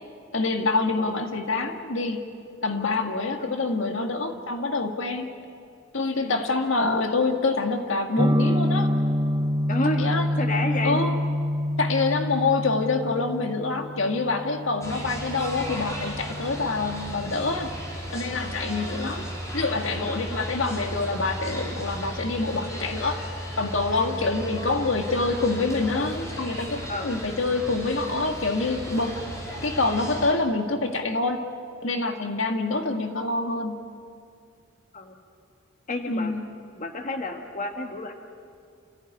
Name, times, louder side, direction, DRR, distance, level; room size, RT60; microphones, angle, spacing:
voice 1, 0.3-2.2 2.6-5.3 5.9-8.9 10.0-10.3 10.8-11.2 11.8-17.7 18.1-19.2 19.5-23.2 23.6-29.2 29.6-31.4 31.8-33.8 36.1-36.4, left 3 dB, 75° left, 5 dB, 1.8 m, -26 dB
sound 1, 8.2-18.0, left 1 dB, 20° right, 0.9 m, -27 dB
voice 2, 9.7-10.1 10.4-11.0 18.8-18.9 24.0-24.2 24.5-24.7 26.9-27.1 34.9-35.2 35.9-36.3 36.8-38.1, left 2 dB, 40° left, 4 dB, 1.6 m, -31 dB
sound 2, 14.8-30.3, equal, 15° left, 4.4 m, -35 dB
29.0 x 15.0 x 9.9 m, 2.2 s
head